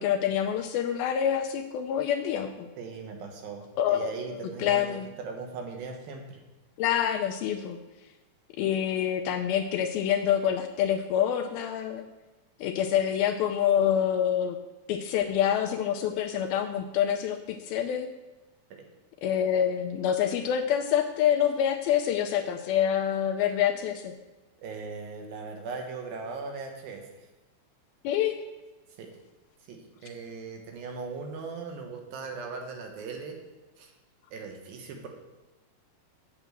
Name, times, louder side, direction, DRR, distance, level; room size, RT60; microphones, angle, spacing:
voice 1, 0.0-2.7 3.8-5.1 6.8-7.8 8.6-12.1 12.6-14.6 14.9-18.1 19.2-24.1 28.0-28.4, left 9 dB, 80° left, 5 dB, 2.2 m, -26 dB
voice 2, 2.8-6.4 18.7-18.9 24.6-27.3 29.0-29.1 29.7-33.4 33.8-33.9 34.3-35.1, right 4 dB, 70° right, 3 dB, 2.8 m, -39 dB
8.9 x 6.9 x 7.6 m, 1.1 s
omnidirectional pair, 4.7 m